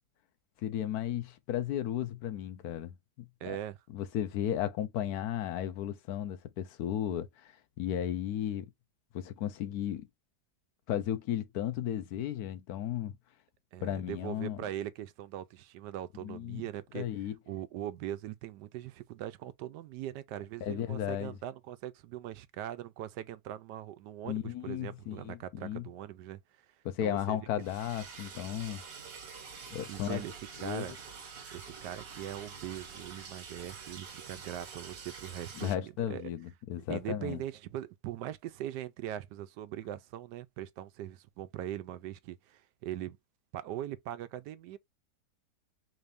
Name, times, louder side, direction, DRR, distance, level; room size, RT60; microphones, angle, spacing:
voice 1, 0.6-3.6 3.9-8.7 9.1-10.1 10.9-13.2 13.8-14.6 16.2-16.6 16.9-17.4 20.6-21.4 24.2-25.9 26.8-28.8 29.7-30.2 30.6-31.0 35.6-37.4, left 11 dB, 75° left, 1.1 m, -35 dB
voice 2, 3.4-3.8 13.7-17.1 17.5-26.4 27.0-27.4 29.9-30.3 30.6-31.0 31.5-36.3 36.9-43.2 43.5-44.8, right 12 dB, 85° right, 1.2 m, -41 dB
Liquid, 27.6-35.7, right 5 dB, 60° right, 1.5 m, -47 dB
4.2 x 2.6 x 3.3 m
omnidirectional pair, 1.8 m